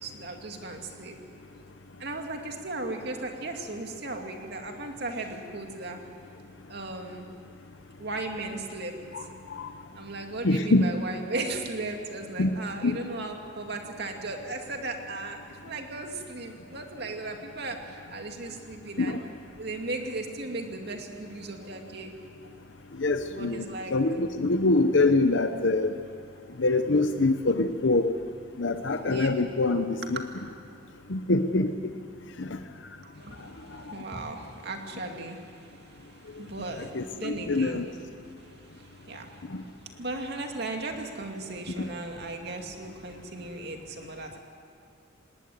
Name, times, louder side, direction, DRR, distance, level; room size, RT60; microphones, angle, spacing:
voice 1, 0.0-1.2 2.0-6.0 6.7-7.3 8.0-9.0 10.0-19.2 19.6-22.1 23.3-23.9 28.7-29.3 33.0-37.8 38.4-39.5 39.8-44.4, right 2 dB, 60° right, 3 dB, 2.4 m, -37 dB
voice 2, 10.4-10.9 12.4-12.5 12.8-13.0 19.0-19.2 23.0-26.0 26.6-28.1 28.6-30.2 31.1-31.7 32.4-32.6 36.8-37.9 39.5-39.6 41.8-41.9, left 2 dB, 65° left, 8 dB, 0.8 m, -25 dB
19.5 x 18.5 x 9.4 m, 2.7 s
head